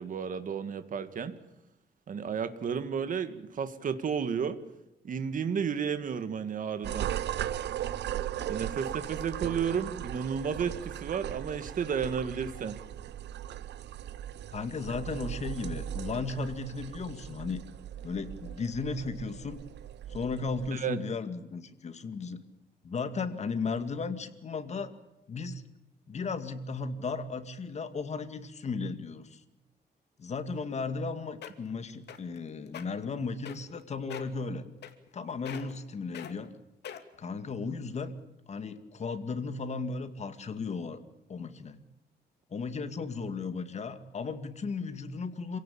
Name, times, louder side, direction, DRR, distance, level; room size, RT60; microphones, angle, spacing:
voice 1, 0.0-1.4 2.1-4.6 5.0-7.1 8.5-12.8 20.7-21.0, right 7 dB, 50° right, 10 dB, 1.9 m, -32 dB
sound 1, 6.8-20.7, right 11 dB, 75° right, 1.0 m, -38 dB
voice 2, 14.5-17.6 18.0-19.6 20.1-22.4 22.8-24.9 25.3-25.6 26.1-29.4 30.2-34.7 35.1-36.5 37.2-38.1 38.5-41.0 41.3-41.8 42.5-45.6, left 4 dB, 40° left, 9 dB, 2.2 m, -35 dB
sound 2, 31.1-31.2 31.4-31.7 32.1-32.4 32.7-32.8 33.5-33.8 34.1-34.4 34.8-35.2 35.5-35.8 36.1-36.3 36.8-37.2 37.8-37.9, left 9 dB, 70° left, 2.5 m, -42 dB
27.5 x 17.5 x 8.8 m, 0.91 s
cardioid pair, 140°, 18 cm